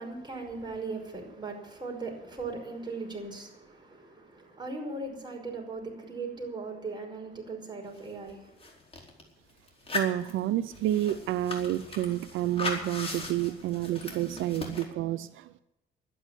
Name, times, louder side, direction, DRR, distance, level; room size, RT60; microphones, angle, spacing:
voice 1, 0.0-8.6, right 3 dB, 20° right, 5.5 m, -38 dB
sound 1, 8.0-8.1 8.3-9.2 9.7-14.8, left 3 dB, 30° left, 4.4 m, -38 dB
voice 2, 9.9-15.6, right 13 dB, 85° right, 0.6 m, -29 dB
12.0 x 10.0 x 10.0 m
cardioid pair, 90°, 20 cm